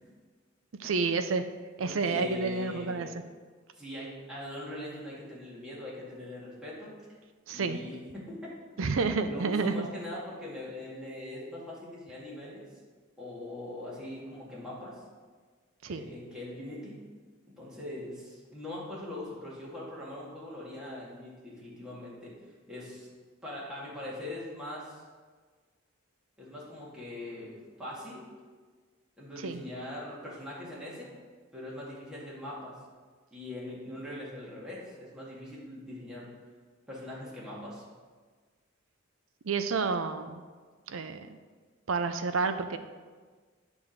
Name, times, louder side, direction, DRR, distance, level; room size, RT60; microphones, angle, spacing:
voice 1, 0.8-1.4 1.8-3.1 7.5-7.8 8.8-9.9 15.8-16.1 29.4-29.6 39.4-40.4 40.9-41.4 41.9-42.8, right 4 dB, 85° right, 9 dB, 0.6 m, -30 dB
voice 2, 1.8-3.1 3.7-7.0 7.5-8.5 9.3-12.6 13.2-15.0 15.9-17.0 17.6-22.3 22.7-23.1 23.4-25.0 26.4-28.3 29.2-31.1 31.5-32.7 33.3-36.3 36.9-37.8, left 1 dB, 5° right, -8 dB, 2.2 m, -41 dB
8.9 x 3.6 x 6.5 m, 1.5 s
head